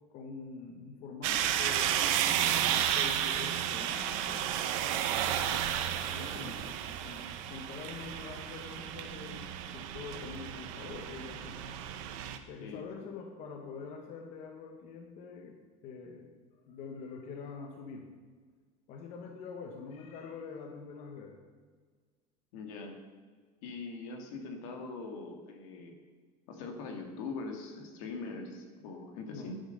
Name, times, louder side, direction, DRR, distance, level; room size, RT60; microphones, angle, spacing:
voice 1, 0.1-4.5 5.4-11.6 12.5-15.6 15.8-16.3 16.6-18.1 18.9-21.4 29.3-29.5, left 5 dB, 45° left, 3 dB, 1.3 m, -45 dB
sound 1, 1.2-12.4, right 10 dB, 75° right, 1.1 m, -32 dB
voice 2, 12.6-13.1 22.5-23.0 23.6-26.0 26.5-29.6, left 3 dB, 80° left, 4 dB, 2.3 m, -42 dB
10.5 x 10.5 x 6.6 m, 1.5 s
cardioid pair, 180°, 17 cm